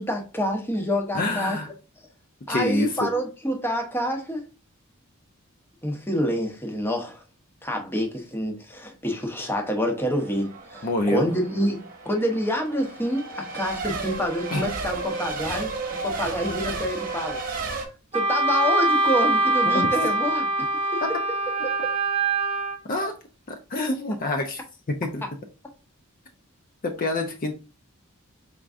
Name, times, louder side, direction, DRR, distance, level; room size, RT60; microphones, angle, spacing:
voice 1, 0.0-1.6 2.5-4.4 5.8-7.2 7.6-15.7 16.0-17.4 18.1-21.0 21.6-21.9, equal, 10° left, 0.8 m, -27 dB
voice 2, 1.1-1.7 2.5-3.1 10.8-11.3 14.5-14.6 19.7-19.9 22.9-23.1 23.7-24.6 25.0-25.2 26.8-27.5, left 2 dB, 40° left, 0.5 m, -26 dB
Race car auto racing / Accelerating revving vroom / Mechanisms, 10.0-17.9, right 3 dB, 40° right, 1.0 m, -33 dB
Wind instrument woodwind instrument, 18.1-22.8, right 2 dB, 25° right, 0.6 m, -23 dB
4.4 x 3.6 x 2.5 m
head